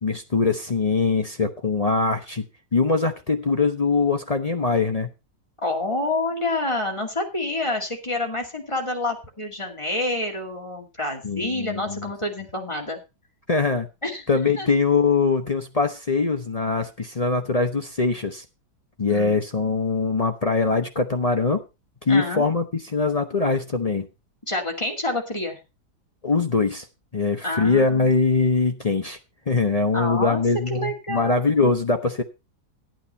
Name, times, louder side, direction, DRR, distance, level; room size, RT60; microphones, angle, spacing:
voice 1, 0.0-2.4 2.7-5.1 11.2-12.1 13.5-13.9 14.3-18.4 19.0-21.6 22.0-24.1 26.2-26.9 27.1-29.2 29.5-32.2, left 4 dB, 40° left, 6 dB, 0.5 m, -22 dB
voice 2, 5.6-13.0 14.0-14.2 14.6-14.7 19.1-19.4 22.1-22.5 24.5-25.6 27.4-28.1 29.9-30.4 30.7-31.7, left 2 dB, 15° left, 1 dB, 2.2 m, -28 dB
11.5 x 9.0 x 4.2 m, 0.27 s
omnidirectional pair, 1.8 m